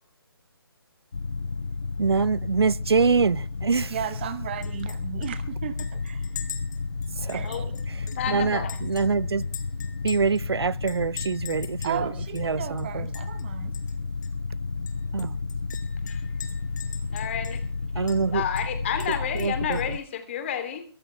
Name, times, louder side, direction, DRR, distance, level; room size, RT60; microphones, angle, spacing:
sound 1, 1.1-20.0, left 3 dB, 80° left, 0.9 m, -32 dB
voice 1, 2.0-3.9 7.2-7.4 8.3-9.4 10.0-12.0 12.4-13.0 15.1-15.3 18.0-18.4 19.3-19.8, right 5 dB, 80° right, 0.6 m, -24 dB
voice 2, 3.9-6.4 7.3-7.7 11.8-13.7, right 9 dB, 25° right, 0.9 m, -35 dB
Chink clink, 4.6-5.0 5.2-5.3 5.8-8.3 8.7-10.4 10.9-12.0 12.3-12.4 12.8-13.4 13.7-13.9 14.2-14.3 14.9-17.7 18.1-18.2 18.6-19.9, left 8 dB, 45° left, 2.5 m, -42 dB
voice 3, 7.4-7.8 8.1-8.8 16.1-16.2 17.1-17.6 17.9-20.8, left 9 dB, 30° left, 3.0 m, -31 dB
22.5 x 13.5 x 3.4 m
figure-of-eight pair, 160°, 13 cm